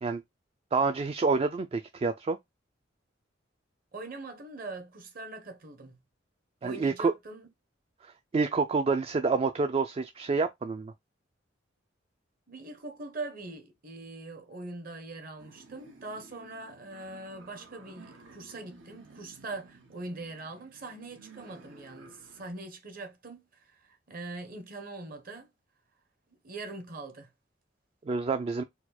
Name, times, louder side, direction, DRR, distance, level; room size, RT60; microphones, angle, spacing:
voice 1, 0.7-2.4 6.6-7.1 8.0-10.9 28.1-28.6, right 4 dB, 30° right, 0.3 m, -28 dB
voice 2, 3.9-6.0 6.6-7.5 12.5-25.5 26.4-27.3, right 2 dB, 50° right, 1.1 m, -42 dB
sound 1, 15.4-22.5, right 3 dB, 80° right, 1.2 m, -54 dB
4.3 x 2.2 x 4.2 m
head